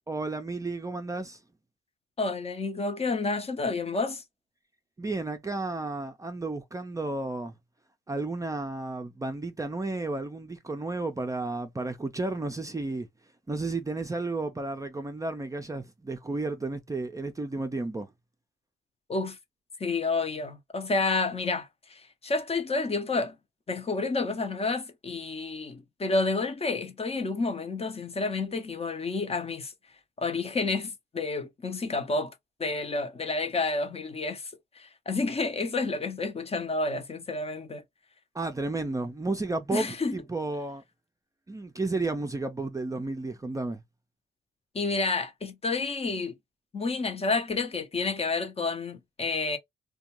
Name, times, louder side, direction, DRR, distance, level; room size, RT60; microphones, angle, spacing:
voice 1, 0.1-1.4 5.0-7.5 8.1-13.1 13.5-18.1 38.3-40.8 41.5-43.8, right 2 dB, 15° right, 0.5 m, -32 dB
voice 2, 2.2-4.2 19.1-19.4 19.8-23.4 23.7-29.7 30.2-32.3 32.6-37.8 39.7-40.2 44.7-46.3 46.7-49.6, left 3 dB, 30° left, 0.6 m, -30 dB
2.4 x 2.2 x 2.9 m
cardioid pair, 90°, 20 cm